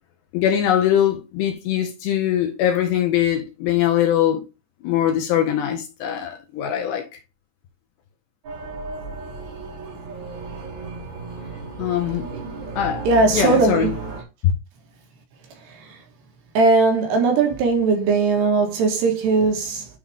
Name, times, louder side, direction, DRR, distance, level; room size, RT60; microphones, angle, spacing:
voice 1, 0.3-4.4 4.8-7.0 11.8-12.3 12.8-13.1 13.3-13.9, left 10 dB, 70° left, 2.9 m, -21 dB
sound 1, 8.4-14.2, right 4 dB, 45° right, 3.1 m, -34 dB
voice 2, 13.0-13.9 16.5-19.9, right 3 dB, 65° right, 3.2 m, -19 dB
9.9 x 4.0 x 3.5 m
omnidirectional pair, 5.6 m